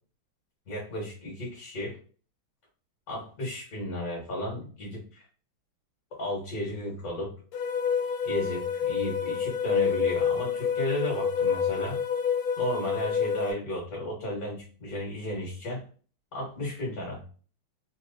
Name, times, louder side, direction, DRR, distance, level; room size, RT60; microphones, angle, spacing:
voice 1, 0.7-2.0 3.1-5.2 6.1-7.3 8.2-12.0 12.6-15.9 16.3-17.2, left 1 dB, 50° left, -3 dB, 1.7 m, -34 dB
sound 1, 7.5-13.5, left 7 dB, 90° left, 1.5 m, -28 dB
3.6 x 2.9 x 2.6 m, 0.40 s
omnidirectional pair, 2.3 m